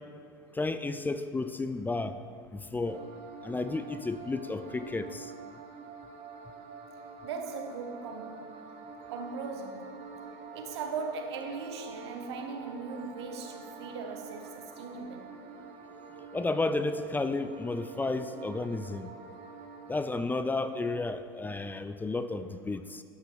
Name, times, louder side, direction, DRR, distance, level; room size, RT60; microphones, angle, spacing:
voice 1, 0.5-2.2 2.5-3.0 3.4-5.3 16.3-19.1 19.9-23.0, left 3 dB, 15° left, 10 dB, 0.5 m, -32 dB
sound 1, 2.9-20.0, right 5 dB, 50° right, 0.9 m, -46 dB
voice 2, 7.2-8.5 9.1-9.9 10.5-15.3, right 4 dB, 80° right, 4 dB, 1.3 m, -39 dB
12.0 x 6.0 x 4.7 m, 2.2 s
hypercardioid pair, 85°, 14 cm